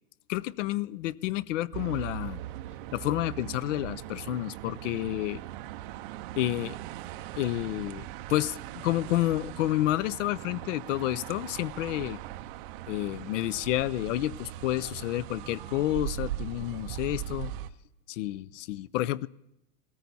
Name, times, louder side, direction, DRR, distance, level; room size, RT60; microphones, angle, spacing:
voice 1, 0.3-2.4 2.9-5.4 6.4-6.8 7.4-12.2 12.9-17.5 18.1-19.3, left 15 dB, 65° left, 23 dB, 0.5 m, -30 dB
sound 1, 1.7-17.7, right 14 dB, 40° right, 0.5 m, -40 dB
18.0 x 14.0 x 4.1 m, 0.84 s
supercardioid pair, 155°, 42 cm